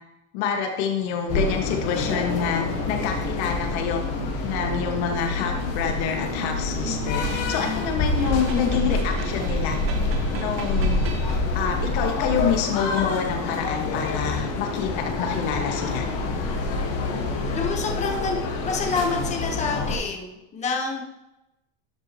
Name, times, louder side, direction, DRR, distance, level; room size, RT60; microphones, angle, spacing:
voice 1, 0.3-4.0 4.4-9.8 10.3-11.0 11.5-16.1, left 7 dB, 65° left, 3 dB, 1.8 m, -27 dB
sound 1, 1.3-20.0, left 2 dB, 40° left, 1.6 m, -27 dB
sound 2, 8.1-14.5, right 4 dB, 40° right, 1.3 m, -40 dB
sound 3, 13.5-16.1, left 1 dB, 5° left, 0.7 m, -41 dB
voice 2, 17.5-21.0, left 4 dB, 20° left, 2 dB, 1.2 m, -28 dB
12.5 x 7.5 x 3.1 m, 0.95 s
supercardioid pair, 165°, 35 cm